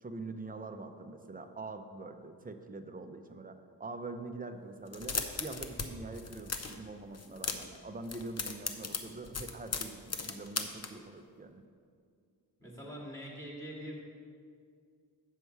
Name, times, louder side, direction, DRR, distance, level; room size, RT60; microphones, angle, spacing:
voice 1, 0.0-11.6, right 3 dB, 20° right, 7 dB, 0.6 m, -44 dB
sound 1, 4.9-5.9 6.1-6.8 7.1-7.8 8.0-10.9, left 4 dB, 40° left, 0.7 m, -36 dB
voice 2, 12.6-14.0, equal, 5° left, -4 dB, 2.3 m, -43 dB
8.2 x 6.8 x 4.7 m, 2.2 s
wide cardioid pair, 70°, 40 cm